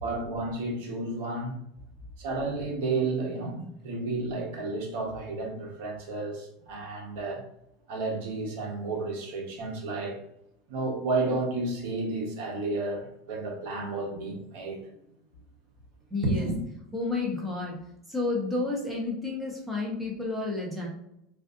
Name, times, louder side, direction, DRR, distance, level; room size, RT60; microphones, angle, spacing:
voice 1, 0.0-1.5 2.2-7.4 7.9-10.2 10.7-14.8 16.3-16.6, right 3 dB, 70° right, 0 dB, 1.0 m, -32 dB
voice 2, 16.1-16.5 16.9-17.7 18.1-20.9, left 3 dB, 5° right, -3 dB, 1.1 m, -30 dB
4.9 x 2.5 x 2.5 m, 0.79 s
supercardioid pair, 140°, 0 cm